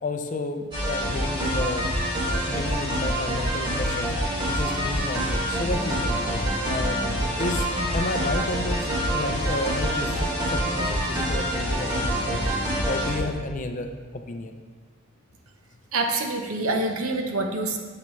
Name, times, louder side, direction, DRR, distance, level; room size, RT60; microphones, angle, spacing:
voice 1, 0.0-1.9 2.2-4.1 4.5-6.2 6.6-7.0 7.4-12.4 12.9-14.5, left 2 dB, 35° left, 6 dB, 0.5 m, -31 dB
sound 1, 0.7-13.2, equal, 20° right, 1.8 m, -26 dB
voice 2, 15.9-17.8, right 2 dB, 80° right, 3 dB, 0.9 m, -26 dB
8.4 x 6.7 x 3.2 m, 1.4 s
head